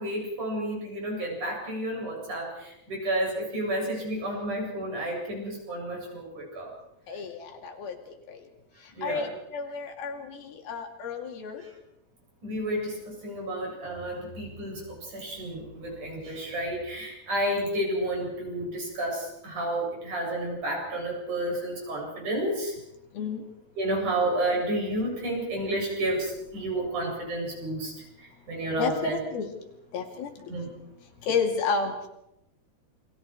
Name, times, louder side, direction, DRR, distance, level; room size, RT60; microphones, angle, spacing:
voice 1, 0.0-6.7 8.9-9.2 12.4-22.7 23.8-27.9 28.5-29.2 30.5-30.7, right 1 dB, 55° right, -1 dB, 9.4 m, -31 dB
voice 2, 7.1-8.5 8.8-11.7 23.1-23.5 28.8-29.5 29.9-30.5 31.2-32.1, left 5 dB, 80° left, 3 dB, 4.3 m, -32 dB
29.0 x 23.0 x 4.8 m, 0.83 s
omnidirectional pair, 4.3 m